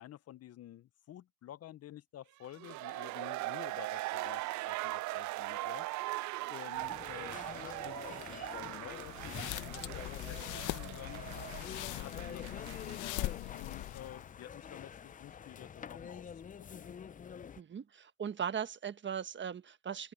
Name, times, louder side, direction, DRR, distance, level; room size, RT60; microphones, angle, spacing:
voice 1, 0.0-5.9 6.5-11.2 11.7-17.0, left 12 dB, 55° left, 0.7 m, -51 dB
sound 1, 2.4-13.3 13.6-13.7, right 19 dB, 70° right, 0.5 m, -40 dB
sound 2, 6.7-17.6, left 7 dB, 25° left, 0.5 m, -47 dB
sound 3, 9.0-14.3, left 17 dB, 80° left, 0.8 m, -41 dB
voice 2, 17.6-20.1, right 7 dB, 40° right, 1.3 m, -39 dB
open air
cardioid pair, 85°, 30 cm